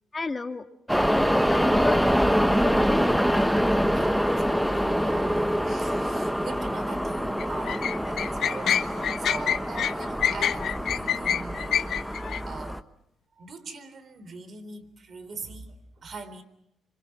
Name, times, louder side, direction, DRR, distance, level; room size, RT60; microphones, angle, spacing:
voice 1, 0.1-0.6 0.9-2.1 2.4-3.1, left 3 dB, 25° left, 6 dB, 2.1 m, -32 dB
sound 1, 0.9-12.8, equal, ahead, 1.1 m, -25 dB
voice 2, 3.6-12.2 12.5-12.8 13.4-16.4, right 4 dB, 50° right, 12 dB, 4.0 m, -42 dB
sound 2, 7.4-12.4, left 9 dB, 65° left, 1.1 m, -26 dB
26.5 x 26.0 x 6.0 m, 0.75 s
cardioid pair, 90°, 0 cm